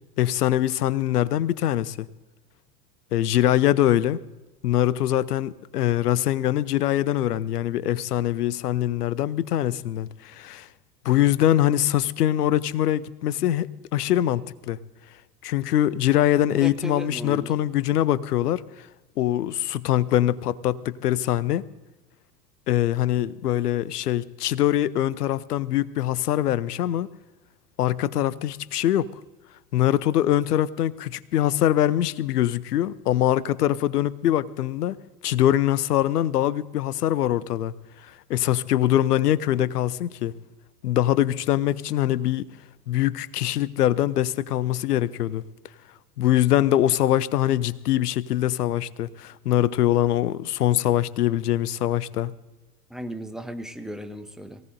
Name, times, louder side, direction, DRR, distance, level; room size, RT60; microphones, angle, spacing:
voice 1, 0.2-2.1 3.1-4.2 4.6-10.7 11.0-13.7 13.9-14.8 15.4-18.6 19.2-21.6 22.7-27.1 27.8-29.1 29.7-35.0 35.2-37.7 38.0-40.3 40.8-42.5 42.9-45.4 46.2-52.3, left 12 dB, 65° left, 0.8 m, -23 dB
voice 2, 16.6-17.6 52.9-54.6, right 1 dB, ahead, 0.8 m, -35 dB
23.0 x 16.5 x 2.6 m
figure-of-eight pair, 85°, 50 cm